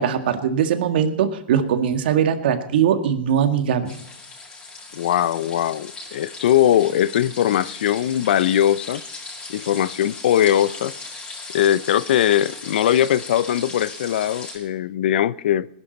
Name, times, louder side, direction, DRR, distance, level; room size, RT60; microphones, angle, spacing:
voice 1, 0.0-3.9, right 8 dB, 70° right, 1.8 m, -21 dB
sound 1, 3.8-14.6, left 3 dB, 20° left, 6.5 m, -38 dB
voice 2, 4.9-9.0 9.5-10.9 11.5-15.7, left 11 dB, 75° left, 0.6 m, -20 dB
20.5 x 11.5 x 4.1 m
hypercardioid pair, 135°, 6 cm